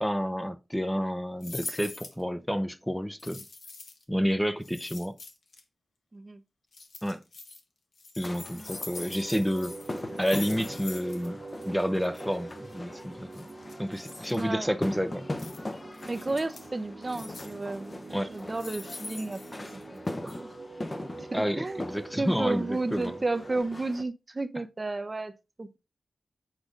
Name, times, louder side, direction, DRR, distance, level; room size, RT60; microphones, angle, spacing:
voice 1, 0.0-3.4 4.1-5.2 7.0-7.2 8.2-9.7 10.2-11.4 11.6-13.5 13.8-15.3 18.1-18.3 21.3-23.1, equal, 5° left, 0.7 m, -30 dB
sound 1, 1.4-2.2 3.2-4.0 4.6-5.6 6.7-7.6 8.0-11.3 11.5-11.6 11.9-12.2 13.3-14.4 15.4-15.6 15.9-16.7 17.1-17.6 18.3-20.0 20.3-20.4, left 3 dB, 80° left, 1.5 m, -43 dB
sound 2, 8.2-24.0, left 1 dB, 35° left, 1.0 m, -41 dB
sound 3, 8.6-23.6, right 3 dB, 65° right, 1.6 m, -45 dB
voice 2, 14.3-14.7 16.0-20.5 21.3-21.8 22.2-25.3 25.6-25.8, right 2 dB, 35° right, 0.8 m, -33 dB
8.2 x 4.8 x 3.8 m
wide cardioid pair, 70°, 0 cm